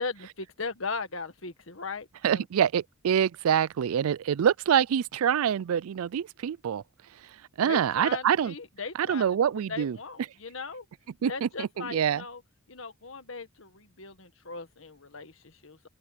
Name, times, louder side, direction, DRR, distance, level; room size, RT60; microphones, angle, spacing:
voice 1, 0.0-2.4 7.6-9.3 9.7-10.9 11.2-12.4 12.7-15.9, left 4 dB, 65° left, 1.6 m, -38 dB
voice 2, 2.2-6.8 7.6-8.5 9.0-10.0 11.2-12.2, right 8 dB, 85° right, 0.4 m, -25 dB
open air
head